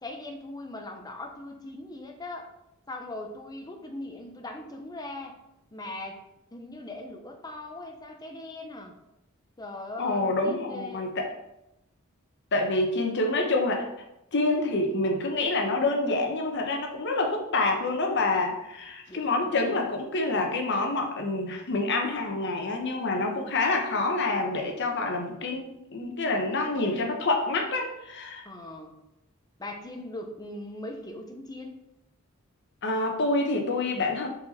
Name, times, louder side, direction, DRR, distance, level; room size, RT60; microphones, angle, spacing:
voice 1, 0.0-2.5 2.9-5.3 5.7-6.2 6.5-8.9 9.6-11.0 19.1-19.6 28.4-29.0 29.6-31.8, left 2 dB, 20° left, 3 dB, 0.7 m, -40 dB
voice 2, 10.0-11.3 12.5-13.8 14.3-28.4 32.8-34.3, left 2 dB, 55° left, 2 dB, 1.0 m, -27 dB
5.5 x 4.1 x 4.1 m, 0.88 s
head